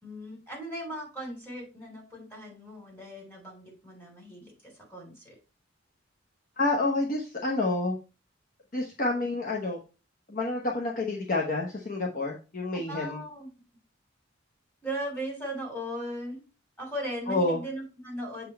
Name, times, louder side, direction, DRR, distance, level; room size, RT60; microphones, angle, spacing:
voice 1, 0.0-5.3 12.7-13.5 14.8-16.4 16.8-18.5, equal, 10° left, -2 dB, 3.2 m, -38 dB
voice 2, 6.6-8.0 8.7-9.8 10.3-13.2 17.3-17.6, left 2 dB, 45° left, -1 dB, 1.0 m, -28 dB
7.3 x 3.9 x 4.2 m, 0.32 s
head